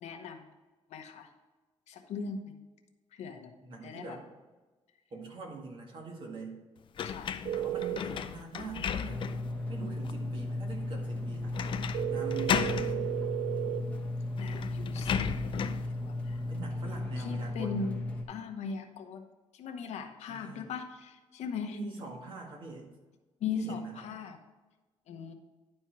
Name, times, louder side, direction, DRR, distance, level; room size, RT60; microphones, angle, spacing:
voice 1, 0.0-0.4 0.9-1.3 1.9-2.5 3.1-3.5 3.8-4.2 7.0-7.4 14.4-15.6 16.1-16.4 17.2-18.0 18.3-19.2 19.5-21.8 23.4-24.4 25.1-25.3, left 6 dB, 85° left, 6 dB, 1.0 m, -39 dB
voice 2, 3.6-4.2 5.1-6.5 7.5-9.2 9.7-11.6 12.1-13.1 16.5-17.9 20.3-20.7 21.7-22.9 23.5-24.1, right 4 dB, 50° right, 0 dB, 1.9 m, -43 dB
sound 1, 7.0-9.5 10.0-10.1 11.5-12.0 12.3-12.9 13.9-14.0 14.4-15.9, left 7 dB, 50° left, 0.5 m, -34 dB
sound 2, 7.4-8.0 11.9-13.8, right 13 dB, 80° right, 0.7 m, -33 dB
sound 3, 9.1-18.2, left 2 dB, 10° left, 1.1 m, -35 dB
10.5 x 4.5 x 4.6 m, 1.2 s
cardioid pair, 145°, 11 cm